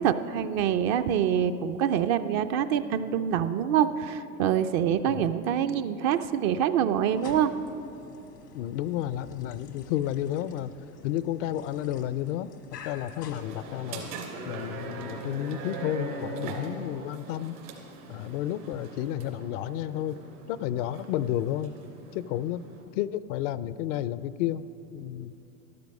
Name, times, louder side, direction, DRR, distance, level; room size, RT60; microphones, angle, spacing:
voice 1, 0.0-7.5, right 9 dB, 40° right, 11 dB, 0.5 m, -25 dB
sound 1, 7.0-14.2, left 5 dB, 90° left, 1.4 m, -48 dB
voice 2, 8.5-10.7 11.0-12.5 12.8-14.1 14.5-17.6 18.1-20.2 20.5-21.7 22.1-24.6 24.9-25.3, left 12 dB, 55° left, 16 dB, 0.5 m, -31 dB
sound 2, 13.3-22.8, right 3 dB, 70° right, 3.0 m, -41 dB
13.0 x 12.0 x 5.3 m, 2.8 s
hypercardioid pair, 100°, 46 cm